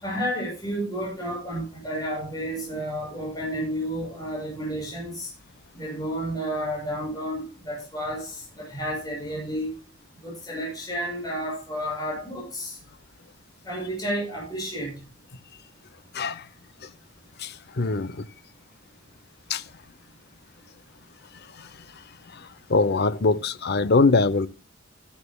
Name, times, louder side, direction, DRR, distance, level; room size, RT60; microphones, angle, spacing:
voice 1, 0.0-5.3 5.7-9.7 10.2-12.8 13.6-14.9, equal, 20° left, 7.4 m, -31 dB
voice 2, 16.1-16.4 17.4-18.3 19.5-19.6 21.6-21.7 22.3-24.5, left 3 dB, 55° left, 0.7 m, -23 dB
15.0 x 12.5 x 2.2 m
head